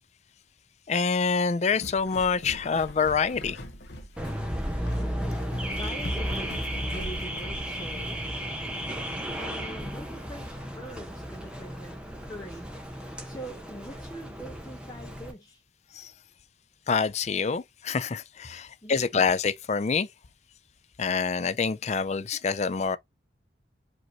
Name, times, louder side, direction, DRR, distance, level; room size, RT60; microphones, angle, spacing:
voice 1, 0.9-3.6 15.9-16.1 16.9-20.1 21.0-23.0, left 5 dB, 35° left, 0.4 m, -26 dB
sound 1, 1.5-7.6, equal, 60° left, 1.1 m, -41 dB
Car / Alarm, 4.2-15.3, equal, 5° right, 0.9 m, -34 dB
voice 2, 4.9-6.6 6.9-8.4 9.4-15.6 18.8-19.0, right 1 dB, 20° left, 1.0 m, -43 dB
5.0 x 3.0 x 2.8 m
head